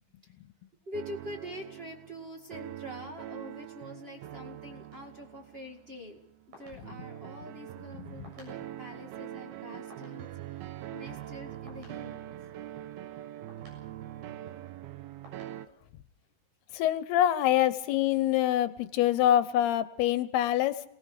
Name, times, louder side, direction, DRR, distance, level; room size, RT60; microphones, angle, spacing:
voice 1, 0.8-6.2 6.6-10.3 10.5-10.6 10.9-12.2, left 1 dB, 30° right, 2 dB, 1.0 m, -44 dB
sound 1, 0.9-15.7, right 12 dB, 75° right, 2.7 m, -43 dB
sound 2, 4.9-16.9, equal, 55° right, 8.8 m, -61 dB
voice 2, 7.9-8.3 16.7-20.8, left 12 dB, 80° left, 13 dB, 2.8 m, -25 dB
28.5 x 19.0 x 5.0 m, 0.69 s
omnidirectional pair, 4.7 m